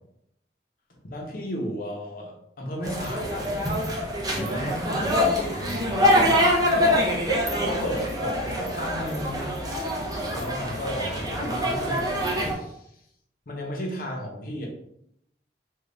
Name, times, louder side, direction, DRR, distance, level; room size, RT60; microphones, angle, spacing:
voice 1, 1.0-3.5 4.3-5.0 5.3-5.6 6.7-7.3 7.6-9.5 10.3-12.9 13.5-14.7, equal, 55° left, -1 dB, 0.8 m, -34 dB
sound 1, 2.8-12.5, equal, 20° right, 0.6 m, -25 dB
voice 2, 4.3-6.4, equal, 65° right, -5 dB, 1.4 m, -36 dB
3.8 x 2.4 x 3.3 m, 0.75 s
head